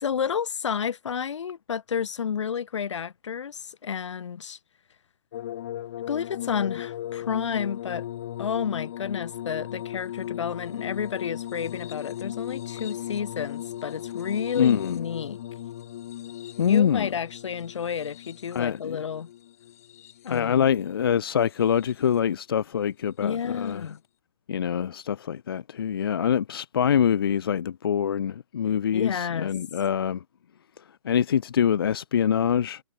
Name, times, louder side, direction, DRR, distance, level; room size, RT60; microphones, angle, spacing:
voice 1, 0.0-4.6 6.1-8.0 8.4-15.4 16.7-19.3 20.2-20.7 23.2-24.0 28.9-29.5, left 7 dB, 70° left, 1.3 m, -31 dB
sound 1, 5.3-20.6 21.4-22.1 23.6-23.7, left 12 dB, 30° left, 1.5 m, -37 dB
voice 2, 14.5-15.0 16.6-17.1 18.5-19.0 20.3-23.8 24.5-30.2 31.0-32.8, left 8 dB, 50° left, 0.5 m, -24 dB
hypercardioid pair, 180°, 16 cm